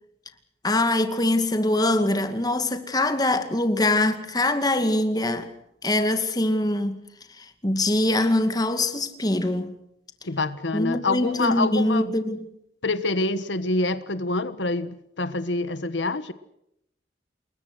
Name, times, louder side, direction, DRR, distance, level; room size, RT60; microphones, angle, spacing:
voice 1, 0.6-5.5 5.8-7.0 7.4-9.7 10.7-12.5, left 1 dB, 20° left, 2.3 m, -23 dB
voice 2, 10.2-12.1 12.8-16.3, left 2 dB, 90° left, 1.3 m, -26 dB
28.5 x 22.0 x 6.3 m
head